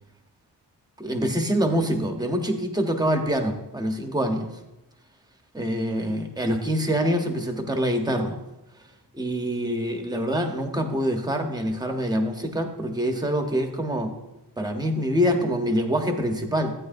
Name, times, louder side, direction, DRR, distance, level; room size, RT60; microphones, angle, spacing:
voice 1, 1.0-4.5 5.5-8.4 9.1-14.1 14.6-16.7, equal, 10° right, 4 dB, 0.9 m, -25 dB
14.5 x 9.3 x 2.6 m, 0.98 s
wide cardioid pair, 160°, 42 cm